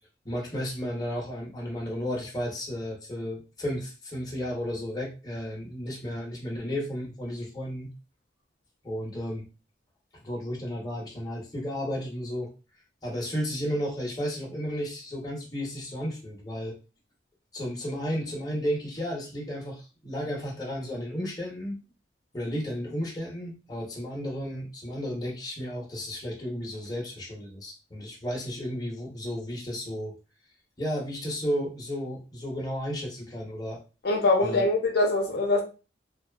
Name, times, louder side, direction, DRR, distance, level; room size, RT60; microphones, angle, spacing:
voice 1, 0.2-7.9 8.8-9.5 10.2-12.5 13.0-16.8 17.5-21.8 22.3-30.2 30.8-33.8 34.4-34.7, equal, 20° left, 0.7 m, -33 dB
voice 2, 34.0-35.6, left 2 dB, 60° left, 0.6 m, -23 dB
2.6 x 2.3 x 2.2 m
head